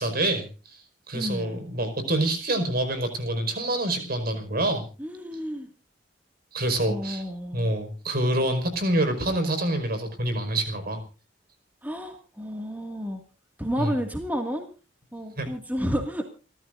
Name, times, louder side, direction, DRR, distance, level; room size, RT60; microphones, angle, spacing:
voice 1, 0.0-4.9 6.5-7.2 7.5-11.0 13.8-13.9 15.4-15.5, right 1 dB, 55° right, 8 dB, 5.1 m, -26 dB
voice 2, 1.1-1.6 5.0-5.7 6.9-7.7 11.8-13.2 13.6-14.7 15.1-16.2, equal, 10° right, 4 dB, 2.1 m, -31 dB
29.5 x 14.0 x 2.6 m, 0.35 s
head